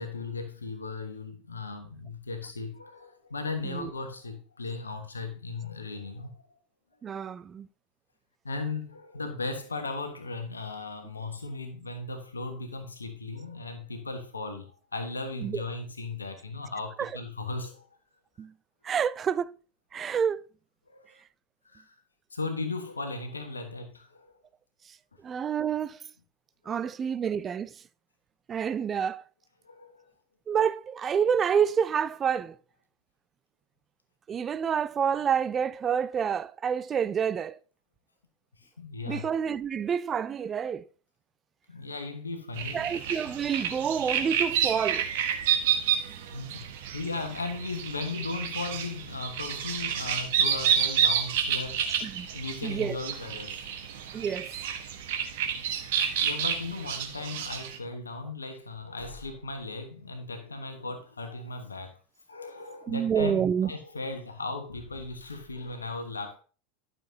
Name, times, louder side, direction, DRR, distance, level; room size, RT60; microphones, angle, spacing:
voice 1, 0.0-6.4 8.4-17.9 20.9-21.1 21.6-21.9 22.3-24.3 26.6-26.8 29.6-30.1 38.6-39.3 41.7-42.9 46.3-51.9 52.3-53.6 56.2-62.0 62.3-66.4, left 3 dB, 80° left, 1.2 m, -37 dB
voice 2, 7.0-7.7 15.4-15.6 17.0-17.1 18.4-18.5 18.8-19.5 19.9-20.4 25.2-26.0 26.7-27.7 28.5-29.2 30.5-32.5 34.3-37.6 39.1-40.8 42.7-45.1 52.0-52.3 52.6-53.0 54.1-54.5 62.9-63.7, right 7 dB, 25° right, 0.5 m, -28 dB
sound 1, 42.6-57.8, right 8 dB, 60° right, 1.4 m, -30 dB
12.0 x 6.8 x 2.8 m
figure-of-eight pair, 85°, 0 cm